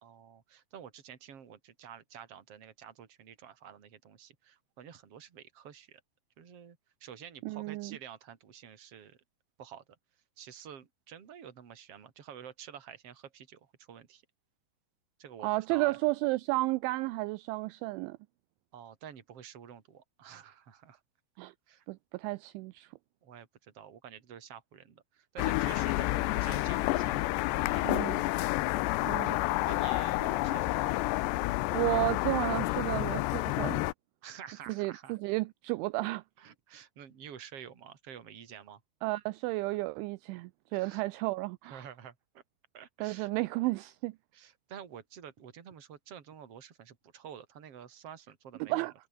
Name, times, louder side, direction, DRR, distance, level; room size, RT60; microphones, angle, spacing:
voice 1, 0.0-6.0 6.4-9.2 9.6-9.8 10.4-14.2 15.2-16.0 18.7-21.0 21.7-21.8 23.2-27.3 27.5-28.0 28.5-28.6 29.6-31.0 34.2-35.2 36.4-38.8 40.7-41.0 41.6-42.4 42.7-43.3 44.3-48.9, right 8 dB, 35° right, 3.1 m, -49 dB
voice 2, 7.4-8.0 15.4-18.2 21.4-21.5 21.9-22.9 27.8-28.2 29.0-29.4 31.7-33.8 34.7-36.2 39.0-41.8 43.0-44.2 48.6-48.9, right 21 dB, 80° right, 2.9 m, -32 dB
sound 1, 25.4-33.9, left 19 dB, 85° left, 2.5 m, -29 dB
omnidirectional pair, 5.8 m